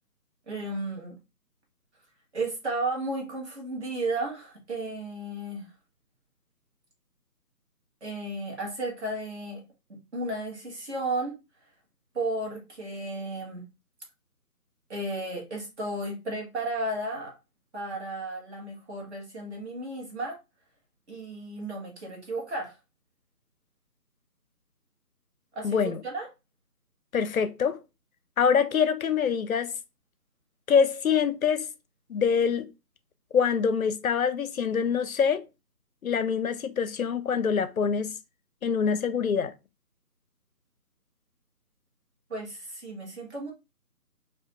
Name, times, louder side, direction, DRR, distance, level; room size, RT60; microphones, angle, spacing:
voice 1, 0.5-1.2 2.3-5.7 8.0-9.6 9.9-11.3 12.1-13.7 14.9-17.3 17.7-20.4 21.1-22.7 25.5-25.8 26.0-26.3 42.3-43.5, right 2 dB, 45° right, 1.6 m, -33 dB
voice 2, 25.6-26.0 27.1-27.8 28.4-29.7 30.7-31.7 32.1-32.7 33.3-35.4 36.0-38.2 38.6-39.5, left 6 dB, 60° left, 0.6 m, -25 dB
4.9 x 2.5 x 2.4 m
figure-of-eight pair, 165°, 47 cm